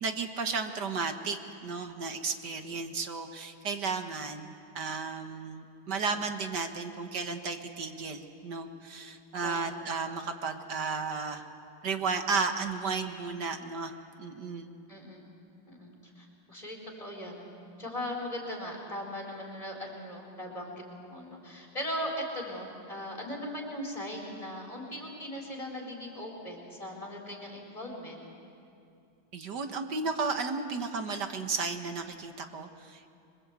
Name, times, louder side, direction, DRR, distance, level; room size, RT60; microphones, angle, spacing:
voice 1, 0.0-11.5 11.8-13.9 14.2-14.7 29.3-33.1, right 4 dB, 55° right, 6 dB, 1.8 m, -34 dB
voice 2, 9.4-9.8 14.9-15.3 15.7-17.4 17.8-28.2, equal, 15° left, -1 dB, 4.5 m, -39 dB
26.5 x 23.5 x 8.2 m, 2.6 s
omnidirectional pair, 2.4 m